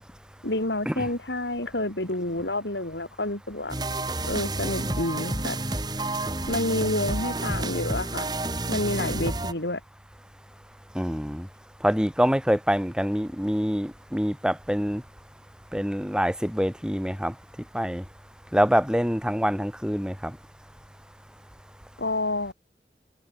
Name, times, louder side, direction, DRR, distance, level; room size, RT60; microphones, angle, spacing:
voice 1, 0.4-3.8 4.2-5.6 6.5-8.3 8.7-9.8 22.0-22.5, left 1 dB, 85° left, 5.7 m, -29 dB
sound 1, 3.7-9.5, right 2 dB, 25° right, 3.5 m, -30 dB
voice 2, 11.0-11.5 11.8-15.0 15.7-17.3 17.7-18.0 18.5-20.4, equal, 5° right, 7.2 m, -25 dB
head